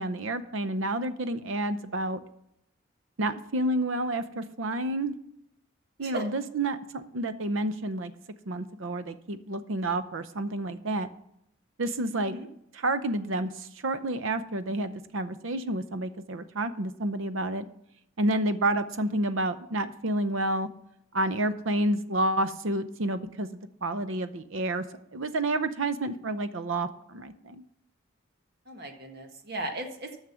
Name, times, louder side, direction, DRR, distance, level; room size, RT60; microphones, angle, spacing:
voice 1, 0.0-2.2 3.2-5.1 6.0-8.1 8.5-11.1 11.8-12.4 12.7-17.6 18.2-20.7 21.1-24.8 25.1-27.6, right 1 dB, 75° right, 12 dB, 0.7 m, -29 dB
voice 2, 28.7-30.2, right 2 dB, 50° right, 4 dB, 1.5 m, -36 dB
9.8 x 6.4 x 6.9 m, 0.78 s
head